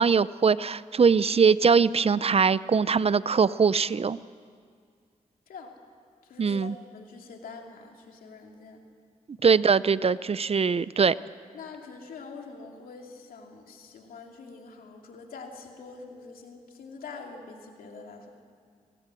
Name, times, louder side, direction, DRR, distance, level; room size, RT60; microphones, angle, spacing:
voice 1, 0.0-4.2 6.4-6.8 9.4-11.1, right 5 dB, 45° right, 18 dB, 0.6 m, -22 dB
voice 2, 6.3-8.8 11.5-18.3, left 4 dB, 90° left, 2 dB, 2.6 m, -45 dB
26.5 x 17.5 x 7.6 m, 2.1 s
cardioid pair, 55°, 14 cm